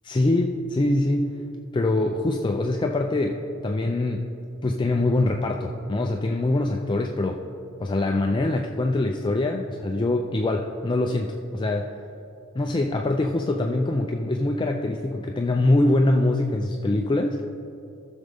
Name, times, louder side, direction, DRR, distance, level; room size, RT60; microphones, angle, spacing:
voice 1, 0.0-1.4 1.7-4.3 4.6-7.4 7.8-12.0 12.5-17.4, left 2 dB, 20° left, 2 dB, 0.4 m, -24 dB
14.5 x 6.3 x 3.4 m, 2.8 s
head